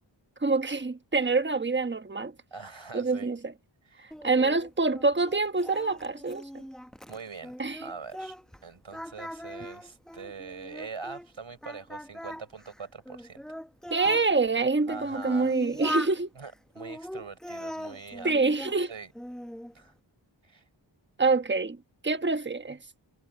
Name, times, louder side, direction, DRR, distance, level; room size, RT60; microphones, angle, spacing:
voice 1, 0.4-2.3 2.9-3.4 4.2-6.6 7.6-7.8 13.9-16.3 18.2-18.9 21.2-21.8 22.0-22.8, right 3 dB, 25° right, 1.1 m, -26 dB
voice 2, 2.5-3.3 3.9-4.0 7.1-7.5 7.8-8.4 8.6-13.4 14.9-15.5 16.4-18.4 18.9-19.1 19.7-19.9 20.4-20.6, right 5 dB, 85° right, 5.2 m, -43 dB
Singing, 4.1-8.6 8.9-11.3 11.6-14.3 14.9-16.2 16.8-18.8 19.1-19.7, equal, ahead, 0.7 m, -40 dB
wide cardioid pair, 80°, 46 cm